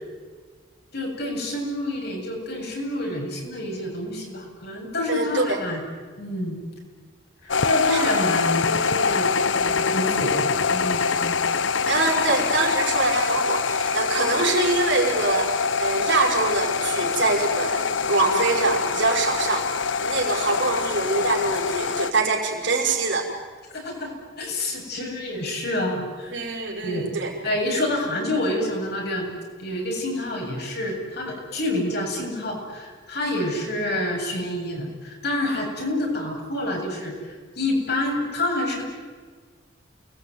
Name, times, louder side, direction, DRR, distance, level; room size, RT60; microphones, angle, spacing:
voice 1, 0.9-5.8 6.2-6.6 7.4-11.4 23.7-26.4 26.8-27.1 27.4-29.3 29.6-38.8, left 1 dB, 55° left, 0 dB, 7.9 m, -28 dB
voice 2, 5.1-5.6 7.9-8.1 11.9-19.7 20.0-23.3 26.3-27.3, right 3 dB, 65° right, 1 dB, 5.6 m, -24 dB
sound 1, 7.5-22.1, left 5 dB, 75° left, 0.9 m, -24 dB
29.5 x 20.0 x 9.7 m, 1.5 s
head